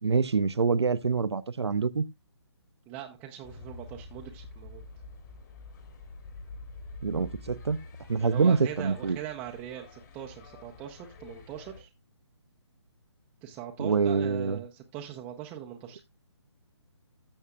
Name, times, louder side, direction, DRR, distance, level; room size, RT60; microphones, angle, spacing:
voice 1, 0.0-2.0 7.0-7.8 8.1-9.2 13.8-14.6, right 5 dB, 65° right, 0.6 m, -26 dB
voice 2, 2.9-4.8 8.2-11.9 13.4-16.0, right 11 dB, 10° right, 0.5 m, -41 dB
sound 1, 3.4-11.8, left 3 dB, 40° left, 2.1 m, -47 dB
14.0 x 6.4 x 2.3 m
figure-of-eight pair, 140°, 15 cm